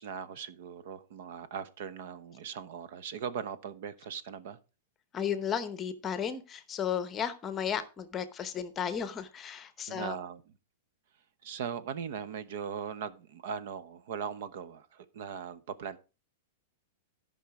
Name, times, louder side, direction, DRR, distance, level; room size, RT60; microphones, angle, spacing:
voice 1, 0.0-4.6 9.9-10.5 11.4-16.0, right 7 dB, 55° right, 1.0 m, -39 dB
voice 2, 5.1-10.1, left 8 dB, 15° left, 0.8 m, -34 dB
13.5 x 5.6 x 4.8 m
supercardioid pair, 165°, 0 cm